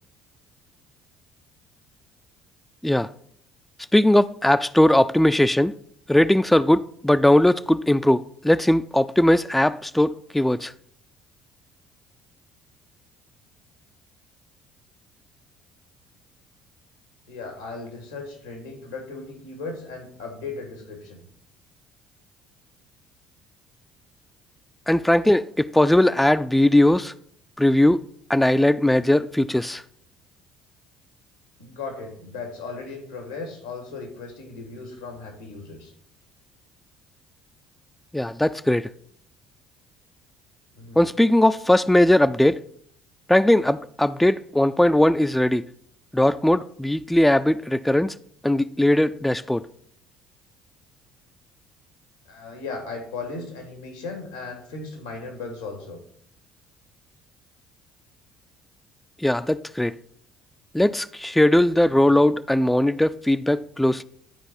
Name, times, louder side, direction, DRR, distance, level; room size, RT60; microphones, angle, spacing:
voice 1, 3.9-5.7 6.1-10.7 24.9-27.1 27.6-28.0 28.3-29.8 38.1-38.9 41.0-42.6 43.3-45.7 46.1-48.1 48.4-49.7 59.2-59.9 60.7-64.0, left 1 dB, 5° left, 0.3 m, -19 dB
voice 2, 17.3-21.2 31.6-35.9 40.7-41.0 52.3-56.0, left 3 dB, 90° left, 2.3 m, -36 dB
11.5 x 4.7 x 4.3 m
hypercardioid pair, 55°, 3 cm